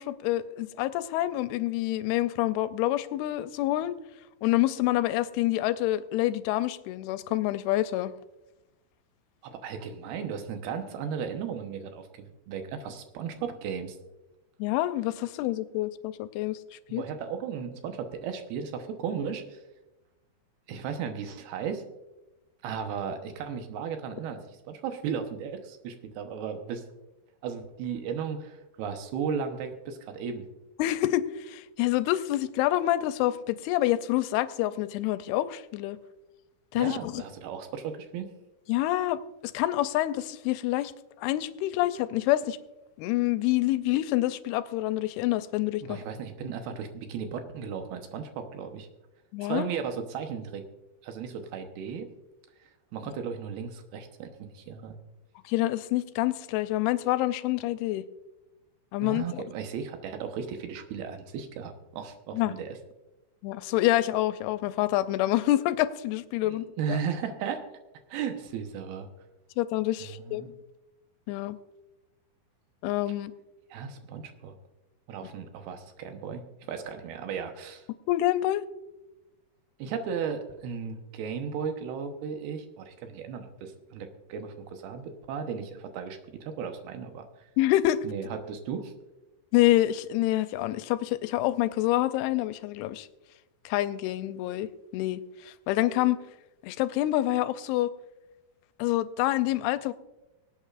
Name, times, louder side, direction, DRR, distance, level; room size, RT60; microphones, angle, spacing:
voice 1, 0.0-4.0 4.4-8.1 14.6-16.6 16.9-17.0 30.8-36.0 36.7-37.2 38.7-40.9 41.2-42.6 43.0-46.0 49.3-49.7 55.5-58.1 58.9-59.4 62.3-62.5 63.4-67.0 69.6-70.4 71.3-71.6 72.8-73.3 78.1-78.6 87.6-88.0 89.5-93.1 93.7-94.7 94.9-96.2 96.6-97.9 98.8-99.9, left 15 dB, 85° left, 13 dB, 2.5 m, -27 dB
voice 2, 9.4-14.0 16.9-19.6 20.7-21.8 22.6-26.8 27.4-30.4 36.8-38.3 45.8-48.9 49.5-50.6 51.0-52.1 52.9-55.0 59.0-62.8 66.4-67.6 68.1-69.1 70.0-70.5 73.7-74.6 75.1-77.9 79.8-87.3 88.0-88.9, right 7 dB, 80° right, 6 dB, 3.0 m, -35 dB
24.5 x 8.5 x 2.5 m, 1.0 s
omnidirectional pair, 4.5 m